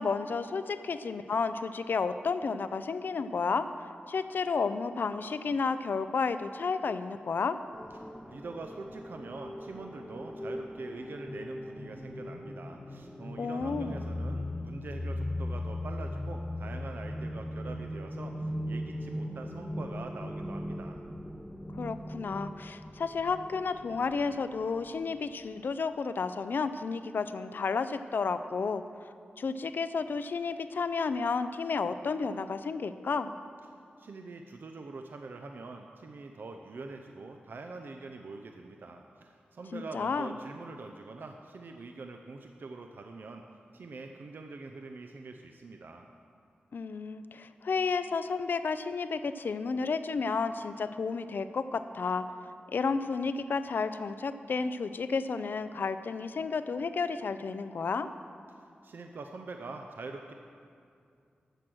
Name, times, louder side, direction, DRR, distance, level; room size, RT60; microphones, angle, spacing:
voice 1, 0.0-3.7 4.1-7.6 13.4-14.0 21.8-29.1 29.4-33.3 39.7-40.3 46.7-52.2 52.7-58.1, left 4 dB, 65° left, 11 dB, 0.5 m, -32 dB
sound 1, 7.7-24.9, left 1 dB, 5° left, 0.8 m, -39 dB
voice 2, 8.3-21.0 34.0-43.4 43.7-46.1 58.5-60.3, right 3 dB, 65° right, 4 dB, 0.6 m, -44 dB
13.0 x 7.7 x 6.2 m, 2.4 s
wide cardioid pair, 100°, 4 cm